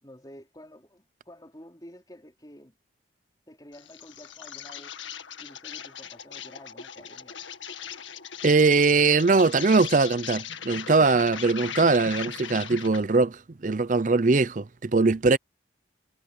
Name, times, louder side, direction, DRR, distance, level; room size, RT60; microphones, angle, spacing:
voice 1, 0.0-2.7 3.5-4.9 5.4-7.5, equal, 20° left, 4.3 m, -49 dB
Insect, 3.7-13.1, left 8 dB, 85° left, 1.9 m, -39 dB
voice 2, 8.4-15.4, right 3 dB, 40° right, 0.6 m, -21 dB
head